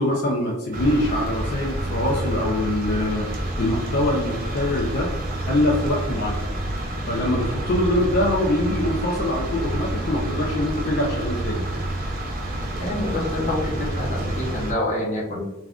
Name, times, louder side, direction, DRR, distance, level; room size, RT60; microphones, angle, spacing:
voice 1, 0.0-3.3 3.6-5.1 5.5-6.4 7.1-11.6, left 1 dB, 50° left, -2 dB, 0.4 m, -23 dB
sound 1, 0.7-14.7, right 1 dB, 45° right, 0.6 m, -28 dB
voice 2, 12.8-15.4, left 1 dB, 35° left, -3 dB, 0.8 m, -27 dB
3.4 x 2.3 x 2.3 m, 1.0 s
head